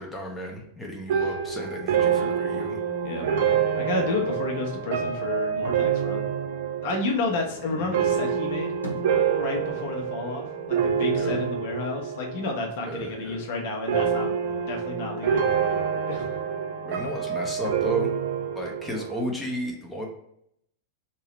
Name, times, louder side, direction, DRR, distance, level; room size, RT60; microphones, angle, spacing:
voice 1, 0.0-2.8 7.7-8.0 11.2-11.4 12.8-13.4 16.9-18.1 18.5-20.1, equal, 5° left, -1 dB, 0.7 m, -34 dB
sound 1, 1.1-12.6 12.8-13.4 13.9-19.2, right 7 dB, 55° right, 0.4 m, -27 dB
voice 2, 3.0-3.5 3.8-6.2 6.8-8.7 9.4-14.3 14.7-15.4 16.1-16.3 19.0-19.1, left 3 dB, 50° left, 1 dB, 0.8 m, -31 dB
sound 2, 8.4-9.9 10.2-12.6 12.9-13.8, left 1 dB, 80° left, 0.7 m, -43 dB
3.0 x 2.8 x 4.2 m, 0.73 s
figure-of-eight pair, 90°, 0 cm